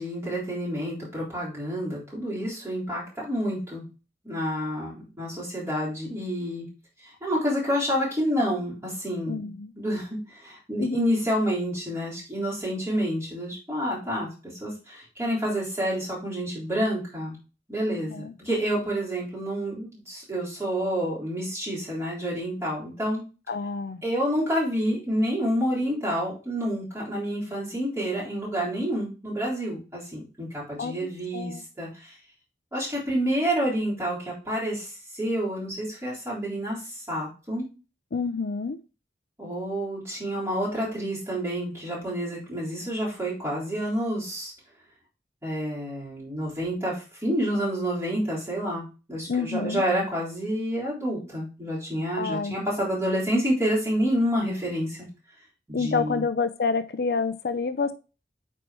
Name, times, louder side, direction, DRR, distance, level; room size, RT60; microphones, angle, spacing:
voice 1, 0.0-3.8 4.2-6.7 7.2-14.3 14.6-17.4 17.7-23.2 24.0-32.1 32.7-36.8 37.1-37.7 39.4-44.5 45.4-55.0 55.7-56.2, equal, 15° right, -7 dB, 3.9 m, -28 dB
voice 2, 9.3-9.7 10.8-11.0 17.9-18.3 23.5-24.0 30.8-31.0 31.3-31.6 38.1-38.8 49.3-49.8 52.2-52.5 55.7-57.9, left 4 dB, 60° left, 11 dB, 0.5 m, -28 dB
8.9 x 4.4 x 3.0 m, 0.32 s
head